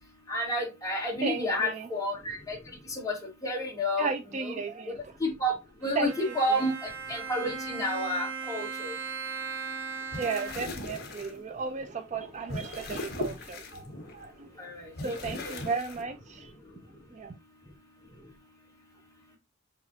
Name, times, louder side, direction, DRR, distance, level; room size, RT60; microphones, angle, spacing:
voice 1, 0.3-2.6 2.9-3.2 3.4-4.1 4.4-4.5 5.2-5.5 5.8-8.9 14.6-15.7, equal, 15° left, 1.7 m, -30 dB
voice 2, 1.2-1.9 4.0-5.1 6.0-6.7 10.2-14.7 15.0-16.5 17.1-17.3, right 5 dB, 35° right, 0.4 m, -35 dB
Bowed string instrument, 5.8-10.9, right 5 dB, 80° right, 1.1 m, -38 dB
sound 1, 10.0-11.3 12.1-14.2 14.9-16.0, left 2 dB, 50° left, 1.1 m, -38 dB
7.2 x 2.5 x 2.8 m
head